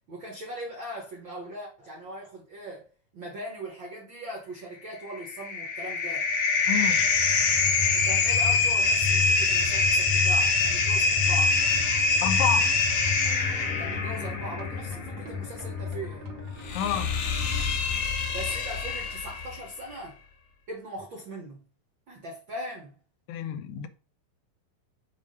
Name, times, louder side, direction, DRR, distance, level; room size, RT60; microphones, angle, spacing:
voice 1, 0.1-2.9 3.1-6.3 7.9-11.6 13.8-16.3 18.3-20.2 20.7-21.6 22.1-22.9, right 1 dB, 75° right, 1.0 m, -40 dB
sound 1, 5.0-19.6, left 4 dB, 70° left, 1.9 m, -25 dB
voice 2, 6.7-7.1 12.2-12.8 16.8-17.2 23.3-23.9, left 9 dB, 85° left, 2.4 m, -30 dB
sound 2, 11.2-17.6, right 3 dB, 55° right, 1.3 m, -46 dB
7.1 x 2.5 x 5.4 m
omnidirectional pair, 4.0 m